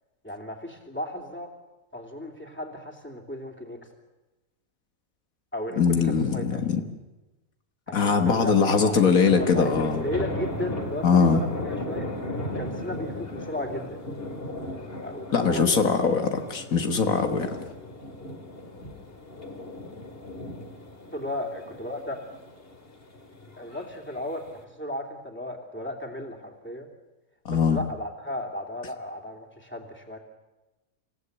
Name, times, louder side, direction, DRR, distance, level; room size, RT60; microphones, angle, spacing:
voice 1, 0.2-1.5 1.9-3.8 5.5-6.6 7.9-9.1 9.4-12.1 12.5-14.0 15.0-16.0 21.1-22.2 23.6-26.9 27.5-30.2, left 1 dB, 10° left, 2 dB, 2.9 m, -35 dB
voice 2, 5.8-6.8 7.9-10.0 11.0-11.4 15.3-17.5 27.5-27.8, left 5 dB, 80° left, 7 dB, 1.9 m, -22 dB
sound 1, 8.3-24.6, left 2 dB, 45° left, 2.4 m, -36 dB
26.5 x 16.0 x 8.2 m, 1.1 s
omnidirectional pair, 1.4 m